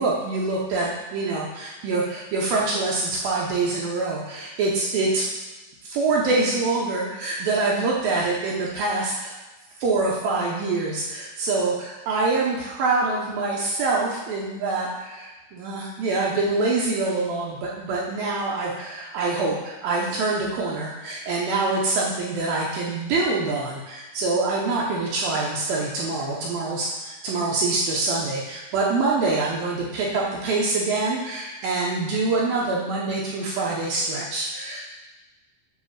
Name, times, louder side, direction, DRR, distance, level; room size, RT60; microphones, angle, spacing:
voice 1, 0.0-5.3 5.8-9.3 9.8-34.8, right 3 dB, 75° right, -4 dB, 2.1 m, -25 dB
7.6 x 3.1 x 6.3 m, 1.1 s
omnidirectional pair, 5.2 m